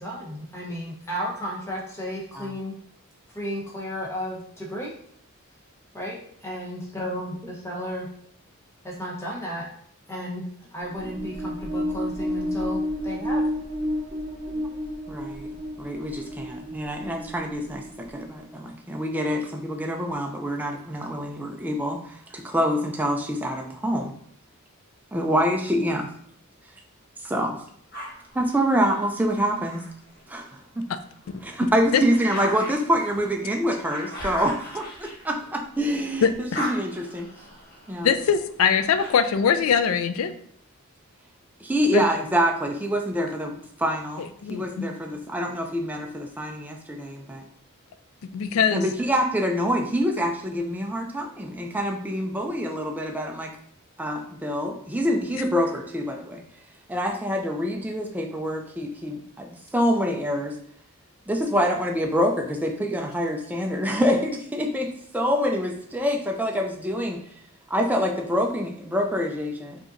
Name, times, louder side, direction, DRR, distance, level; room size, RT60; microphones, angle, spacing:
voice 1, 0.0-2.8 3.3-4.9 5.9-8.1 8.8-9.7 10.1-10.4 10.7-13.4, equal, 10° left, -4 dB, 0.9 m, -33 dB
sound 1, 10.9-18.5, equal, 30° right, 1.6 m, -31 dB
voice 2, 15.1-15.5 15.8-24.1 25.1-26.1 27.2-27.6 28.3-29.9 30.3-30.9 31.4-36.3 36.6-37.3 37.9-38.1 41.6-47.4 48.7-53.5 54.0-56.4 56.9-60.6 61.3-67.2 67.7-69.8, equal, 10° right, 2 dB, 0.3 m, -26 dB
sound 2, 27.9-30.6 31.1-35.9 36.2-39.5, equal, 45° left, 1.1 m, -39 dB
voice 3, 36.2-36.6 38.0-40.3 41.9-42.0 44.4-44.9 48.3-48.8, left 7 dB, 70° left, 11 dB, 0.3 m, -22 dB
4.9 x 2.8 x 2.6 m, 0.66 s
head